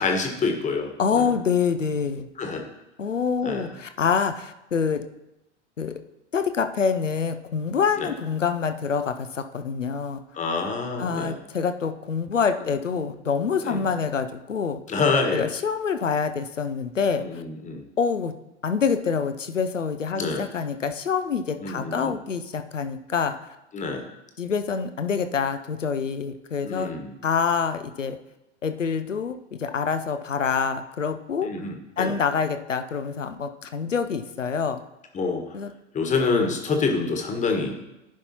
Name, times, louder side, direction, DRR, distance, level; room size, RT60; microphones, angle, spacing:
voice 1, 0.0-1.3 2.4-2.6 3.4-3.7 8.0-8.1 10.3-11.3 13.6-13.8 14.9-15.5 17.2-17.8 20.1-20.4 21.6-22.1 23.7-24.1 26.6-27.1 31.4-32.1 35.1-35.4 35.9-37.8, left 4 dB, 20° left, 4 dB, 1.4 m, -26 dB
voice 2, 1.0-2.3 3.0-5.0 5.8-5.9 6.3-10.2 11.0-14.8 15.3-17.4 18.0-18.3 18.6-23.5 24.4-26.9 27.2-28.2 28.6-31.5 32.0-34.8 35.5-35.7, left 6 dB, 85° left, 9 dB, 0.7 m, -26 dB
15.0 x 5.4 x 2.9 m, 0.94 s
figure-of-eight pair, 90°, 36 cm